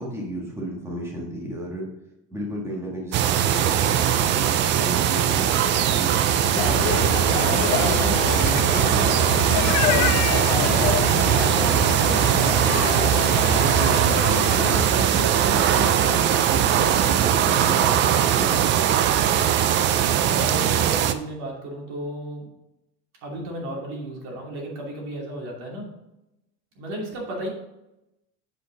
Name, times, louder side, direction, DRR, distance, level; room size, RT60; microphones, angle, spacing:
voice 1, 0.0-1.9 2.3-7.4 7.8-10.2 10.5-12.5 13.4-18.9, equal, 10° right, -2 dB, 1.6 m, -33 dB
sound 1, 3.1-21.1, right 10 dB, 35° right, 0.4 m, -20 dB
sound 2, 6.6-14.9, left 10 dB, 70° left, 0.7 m, -27 dB
voice 2, 9.0-10.0 20.3-22.5 23.2-26.0 26.8-27.5, right 1 dB, 55° right, -2 dB, 2.7 m, -34 dB
8.1 x 4.9 x 4.0 m, 0.91 s
cardioid pair, 165°, 31 cm